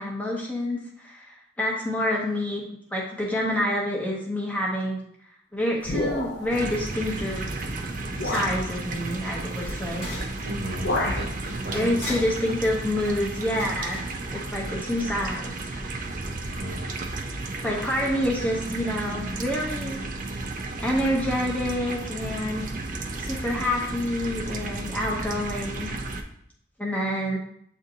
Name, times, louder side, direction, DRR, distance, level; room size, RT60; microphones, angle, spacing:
voice 1, 0.0-2.6 2.9-5.0 5.5-7.7 8.2-10.2 11.7-15.8 17.6-20.0 20.8-22.8 23.2-25.9 26.8-27.4, left 1 dB, 10° left, -3 dB, 0.6 m, -28 dB
sound 1, 5.8-6.6 7.5-7.6 8.2-8.6 10.0-10.3 10.5-11.3, left 1 dB, 65° left, 0.8 m, -29 dB
sound 2, 6.5-26.2, right 2 dB, 45° right, 0.4 m, -33 dB
sound 3, 8.1-15.0, left 1 dB, 35° left, 1.1 m, -42 dB
voice 2, 10.4-12.1 16.5-16.9, right 1 dB, 65° right, -2 dB, 1.3 m, -35 dB
7.7 x 2.6 x 2.7 m, 0.72 s
head